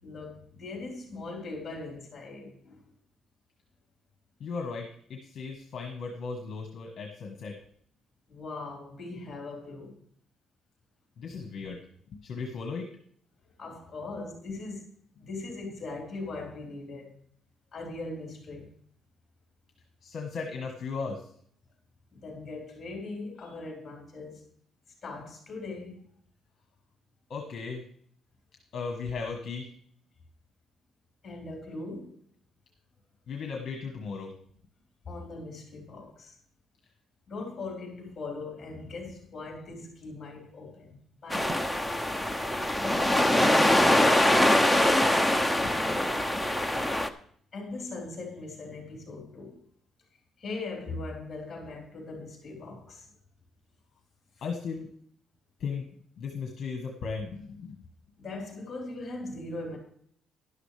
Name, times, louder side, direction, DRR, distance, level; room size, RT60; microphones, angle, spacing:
voice 1, 0.0-2.8 8.3-10.0 11.2-11.3 13.6-14.8 15.2-17.2 17.7-18.7 22.1-24.4 25.0-26.1 31.2-32.2 35.0-36.4 37.3-41.8 47.5-49.6 50.4-53.1 54.4-54.5 58.2-59.8, left 3 dB, 20° left, 4.2 m, -40 dB
voice 2, 4.4-7.6 11.2-11.8 12.1-12.9 20.0-21.3 27.3-27.8 28.7-29.7 33.3-34.3 45.6-46.2 54.4-54.9 55.6-55.9 56.2-57.8, left 5 dB, 45° left, 1.5 m, -36 dB
sound 1, 41.3-47.1, left 1 dB, ahead, 0.5 m, -23 dB
12.5 x 11.5 x 3.4 m
cardioid pair, 180°, 0 cm